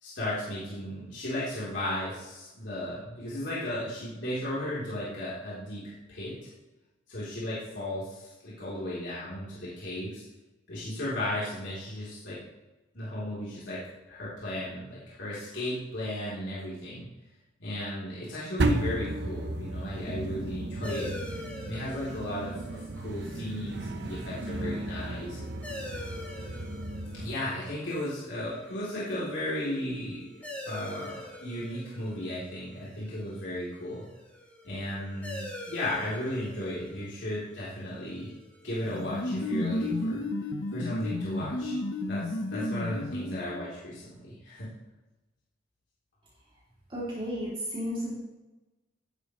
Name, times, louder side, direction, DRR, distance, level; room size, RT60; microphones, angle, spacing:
voice 1, 0.0-6.3 7.1-10.2 10.7-12.4 12.9-13.8 14.1-17.1 17.6-25.5 27.1-34.0 34.6-38.3 38.6-40.2 40.7-41.8 42.1-44.7, left 1 dB, 70° left, -9 dB, 3.8 m, -35 dB
sound 1, 18.6-27.4, right 2 dB, 65° right, 1.1 m, -34 dB
sound 2, 20.8-40.0, left 1 dB, 10° left, 3.1 m, -46 dB
sound 3, 38.8-43.7, left 1 dB, 90° left, 1.1 m, -32 dB
voice 2, 46.9-48.1, equal, 30° right, -7 dB, 3.2 m, -33 dB
15.5 x 11.5 x 3.3 m, 1.1 s
head